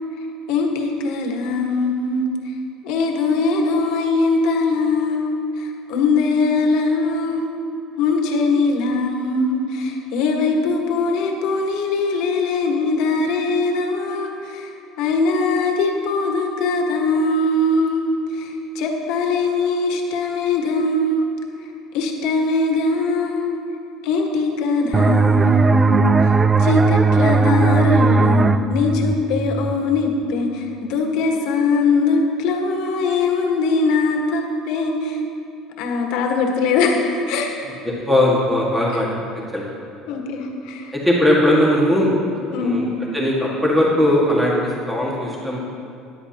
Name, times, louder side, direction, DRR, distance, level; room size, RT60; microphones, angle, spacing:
voice 1, 0.5-2.5 2.8-7.4 8.0-21.2 21.6-23.5 24.0-35.2 35.8-37.5 40.1-40.9 42.5-42.8, left 3 dB, 75° left, 2 dB, 1.4 m, -21 dB
sound 1, 24.9-30.3, right 3 dB, 20° right, 0.3 m, -17 dB
voice 2, 37.8-39.1 39.5-39.6 40.9-42.1 42.6-42.9 43.1-45.6, left 1 dB, 5° right, -4 dB, 1.7 m, -18 dB
13.5 x 10.0 x 2.9 m, 2.5 s
cardioid pair, 120°, 0 cm